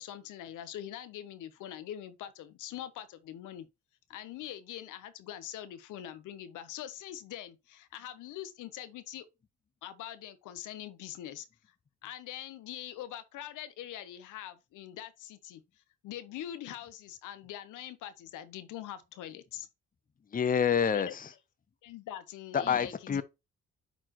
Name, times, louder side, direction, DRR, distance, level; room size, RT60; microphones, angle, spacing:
voice 1, 0.0-3.7 4.1-9.3 9.8-11.5 12.0-19.7 20.8-21.1 21.8-23.2, left 11 dB, 85° left, 0.8 m, -43 dB
voice 2, 20.3-21.4 22.5-23.2, left 7 dB, 30° left, 0.7 m, -28 dB
9.1 x 4.2 x 3.0 m
cardioid pair, 90°, 30 cm